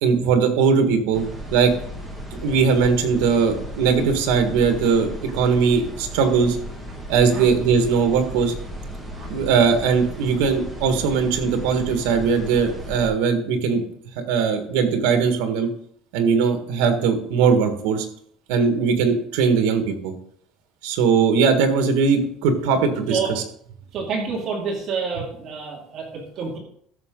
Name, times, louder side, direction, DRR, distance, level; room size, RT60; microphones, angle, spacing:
voice 1, 0.0-1.2 1.5-1.7 2.4-6.6 7.1-8.5 9.3-13.8 14.2-15.7 16.1-18.1 18.5-20.1 20.8-23.4, right 5 dB, 80° right, 7 dB, 1.7 m, -20 dB
sound 1, 1.1-13.1, equal, 5° right, 1.8 m, -35 dB
voice 2, 23.9-26.6, right 5 dB, 35° right, -1 dB, 2.3 m, -28 dB
14.0 x 6.5 x 3.9 m, 0.65 s
cardioid pair, 180°, 0 cm